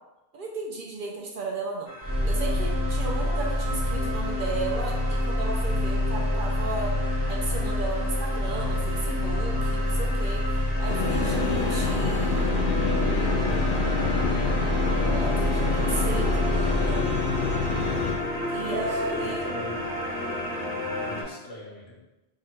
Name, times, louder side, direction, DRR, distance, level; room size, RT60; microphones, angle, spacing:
voice 1, 0.3-1.9 2.2-7.0 7.3-12.3 14.9-17.2 18.5-19.5, right 3 dB, 55° right, -1 dB, 0.7 m, -34 dB
sound 1, 1.9-21.2, left 1 dB, 20° left, 1.2 m, -35 dB
sound 2, 2.0-20.0, left 1 dB, 15° right, 0.7 m, -27 dB
sound 3, 10.9-18.1, left 4 dB, 60° left, 0.6 m, -28 dB
voice 2, 15.0-16.7 18.6-19.9 21.0-22.0, left 2 dB, 80° left, -4 dB, 1.4 m, -40 dB
3.6 x 2.2 x 4.4 m, 0.98 s
omnidirectional pair, 1.1 m